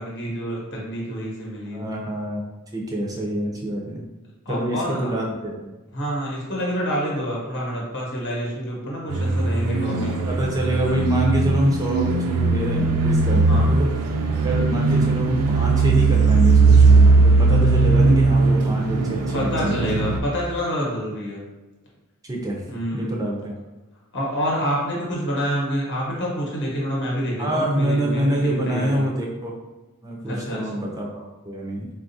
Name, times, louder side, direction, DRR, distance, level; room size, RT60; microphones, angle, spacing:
voice 1, 0.0-1.9 4.5-5.1 5.9-10.2 13.5-13.7 19.3-21.4 22.7-23.2 24.1-29.1 30.2-30.8, equal, 55° left, -4 dB, 0.8 m, -27 dB
voice 2, 1.7-2.4 2.7-4.1 4.5-5.7 9.6-13.9 14.4-19.7 22.3-22.6 22.9-23.5 27.4-29.6 30.0-31.9, right 1 dB, 15° right, -2 dB, 0.4 m, -26 dB
sound 1, 9.1-20.2, right 3 dB, 75° right, 0.4 m, -18 dB
4.1 x 2.3 x 2.6 m, 1.1 s
head